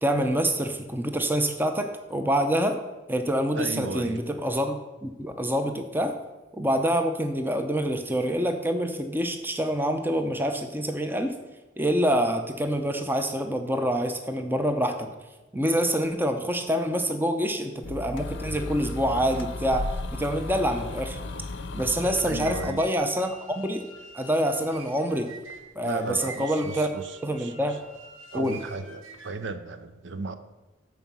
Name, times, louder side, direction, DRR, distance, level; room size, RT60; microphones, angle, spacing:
voice 1, 0.0-2.8 3.1-6.1 6.5-11.3 11.8-15.1 15.5-21.2 21.7-23.8 24.1-25.3 25.8-26.9 27.2-27.8 28.3-28.6, equal, 10° right, 6 dB, 0.7 m, -26 dB
voice 2, 3.5-4.2 22.2-22.9 25.8-27.5 28.3-30.3, right 3 dB, 60° right, 10 dB, 0.6 m, -35 dB
sound 1, 17.8-22.7, left 2 dB, 60° left, 0.6 m, -35 dB
sound 2, 21.8-29.5, right 3 dB, 80° right, 1.4 m, -46 dB
13.5 x 4.7 x 5.5 m, 1.1 s
head